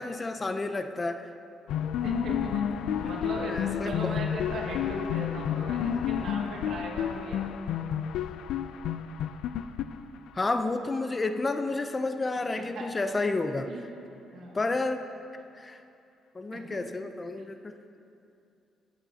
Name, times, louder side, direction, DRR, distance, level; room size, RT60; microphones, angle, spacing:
voice 1, 0.0-1.3 3.5-4.2 10.3-13.7 14.5-15.1 15.5-15.8 16.3-17.8, left 3 dB, 25° left, 8 dB, 0.5 m, -30 dB
sound 1, 1.7-10.5, left 9 dB, 85° left, 0.4 m, -30 dB
voice 2, 2.0-2.7 2.9-7.5 12.6-12.9 13.7-13.9 14.3-14.6 16.5-16.8 17.4-17.5, right 2 dB, 70° right, -1 dB, 2.0 m, -38 dB
19.5 x 8.7 x 2.8 m, 2.6 s
cardioid pair, 90°, 0 cm